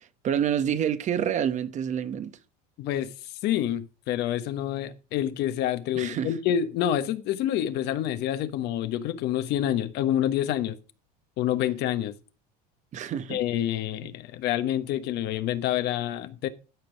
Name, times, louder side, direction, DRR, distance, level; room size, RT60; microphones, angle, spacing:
voice 1, 0.2-2.4 6.0-6.3 12.9-13.4 14.0-14.1, right 9 dB, 40° right, 1.0 m, -27 dB
voice 2, 2.8-3.1 3.4-10.8 11.4-12.1 13.3-16.5, left 11 dB, 60° left, 1.2 m, -27 dB
12.5 x 5.3 x 6.3 m
supercardioid pair, 125°, 19 cm